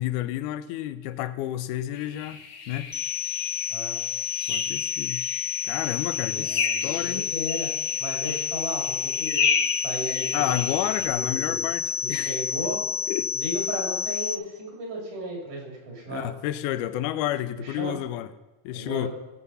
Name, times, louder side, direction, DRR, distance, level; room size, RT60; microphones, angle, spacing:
voice 1, 0.0-2.4 2.7-2.9 4.5-5.2 5.6-7.2 10.3-12.4 13.1-13.3 16.1-18.3 18.7-19.1, left 13 dB, 85° left, 13 dB, 2.1 m, -30 dB
sound 1, 1.9-11.1, left 6 dB, 70° left, 2.2 m, -32 dB
sound 2, 2.9-14.3, left 7 dB, 30° left, 1.0 m, -30 dB
voice 2, 3.7-4.0 6.2-7.7 8.0-9.4 9.7-11.6 12.0-12.8 13.3-16.3 17.5-17.9 18.7-19.1, right 1 dB, 75° right, -2 dB, 4.3 m, -35 dB
17.0 x 6.9 x 5.5 m, 1.2 s
omnidirectional pair, 3.5 m